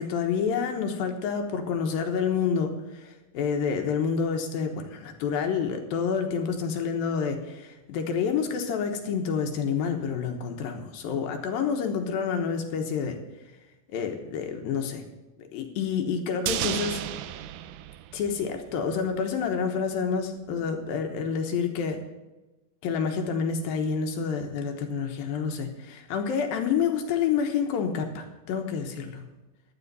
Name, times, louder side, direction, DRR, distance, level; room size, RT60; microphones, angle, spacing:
voice 1, 0.0-13.2 13.9-15.0 15.5-17.0 18.1-22.0 22.8-29.3, left 6 dB, 75° left, 4 dB, 2.7 m, -28 dB
sound 1, 16.5-18.8 19.1-19.2, right 12 dB, 80° right, 2.0 m, -33 dB
15.5 x 11.5 x 4.1 m, 1.1 s
omnidirectional pair, 4.4 m